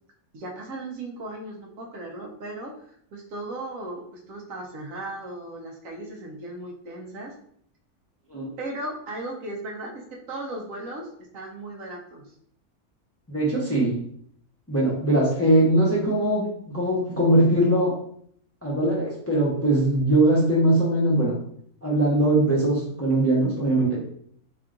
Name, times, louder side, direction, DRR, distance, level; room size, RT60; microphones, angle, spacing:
voice 1, 0.3-7.3 8.6-12.2, right 2 dB, 70° right, 0 dB, 1.1 m, -36 dB
voice 2, 13.3-13.9 14.7-17.9 18.6-21.3 21.8-24.0, right 1 dB, 10° left, -6 dB, 0.8 m, -21 dB
3.7 x 2.3 x 3.7 m, 0.64 s
omnidirectional pair, 1.5 m